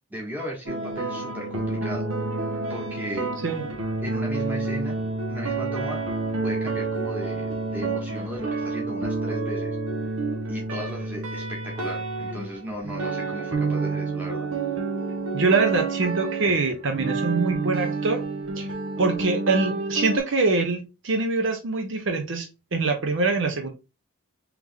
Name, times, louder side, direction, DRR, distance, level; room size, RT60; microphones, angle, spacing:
voice 1, 0.1-2.4 2.7-3.3 4.0-5.0 5.3-6.0 6.4-7.5 7.7-9.8 10.0-10.1 10.5-14.5, equal, 5° right, 1.3 m, -36 dB
sound 1, 0.7-20.2, right 3 dB, 80° right, 1.0 m, -29 dB
voice 2, 15.3-18.2 18.6-18.7 19.0-23.7, right 3 dB, 55° right, 0.6 m, -24 dB
3.5 x 3.1 x 3.5 m
head